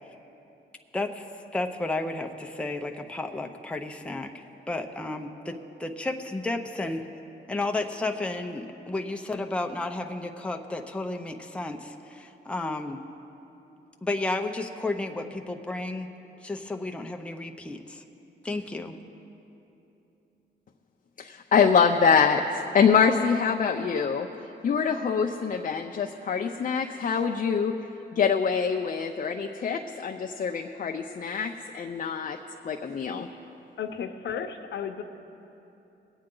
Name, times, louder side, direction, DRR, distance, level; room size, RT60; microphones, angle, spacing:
voice 1, 0.9-1.2 1.5-4.3 4.7-7.1 7.5-13.0 14.0-16.1 16.4-18.0 18.4-19.0, left 2 dB, 5° left, 3 dB, 0.6 m, -32 dB
voice 2, 21.2-24.3 24.6-27.8 28.1-32.4 32.6-33.3, left 6 dB, 45° left, 3 dB, 0.6 m, -24 dB
voice 3, 33.8-35.0, left 7 dB, 75° left, 6 dB, 0.8 m, -33 dB
20.5 x 8.8 x 3.8 m, 2.9 s
cardioid pair, 110°, 19 cm